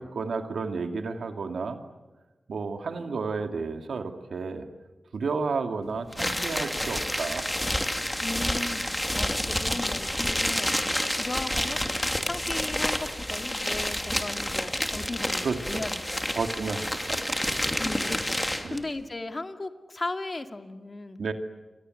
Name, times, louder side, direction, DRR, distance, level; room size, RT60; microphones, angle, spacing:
voice 1, 0.0-1.8 2.5-4.7 5.1-7.5 15.4-15.8 16.3-17.4 17.7-17.8 18.0-18.1 18.6-18.8 21.2-21.3, right 4 dB, 90° right, 6 dB, 2.3 m, -32 dB
sound 1, 6.1-18.8, left 1 dB, 10° left, 2.7 m, -29 dB
voice 2, 8.2-16.3 17.8-21.2, left 2 dB, 35° left, 7 dB, 2.1 m, -37 dB
29.0 x 25.5 x 7.9 m, 1.2 s
wide cardioid pair, 85°, 0 cm